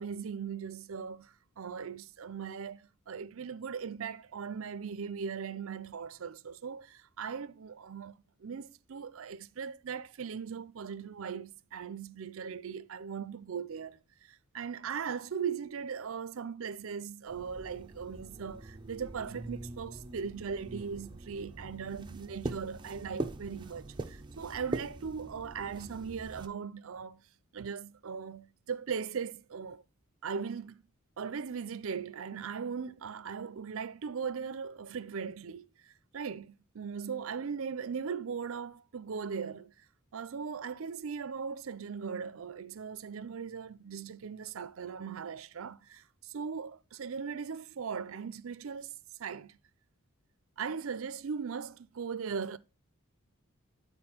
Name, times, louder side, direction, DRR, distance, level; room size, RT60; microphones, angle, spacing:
voice 1, 0.0-8.1 8.4-14.0 14.3-27.2 27.5-29.8 30.2-30.8 31.2-35.7 36.1-39.7 40.1-48.9 49.2-49.6 50.6-52.6, right 6 dB, 65° right, 0.5 m, -39 dB
sound 1, 17.3-26.5, right 2 dB, 20° right, 0.6 m, -42 dB
9.6 x 4.1 x 4.3 m
head